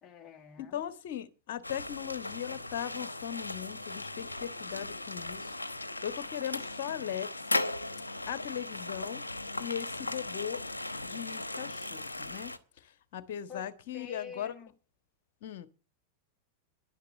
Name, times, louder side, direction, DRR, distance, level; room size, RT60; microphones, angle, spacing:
voice 1, 0.0-0.8 13.5-13.7 13.9-14.7, left 6 dB, 25° left, 1.7 m, -47 dB
voice 2, 0.6-5.6 6.0-7.6 8.3-9.2 9.6-10.6 11.0-12.5 12.8-14.5 15.4-15.7, left 10 dB, 55° left, 1.4 m, -38 dB
sound 1, 1.6-12.6, left 2 dB, 80° left, 1.0 m, -37 dB
11.0 x 10.5 x 7.4 m
figure-of-eight pair, 90°, 0 cm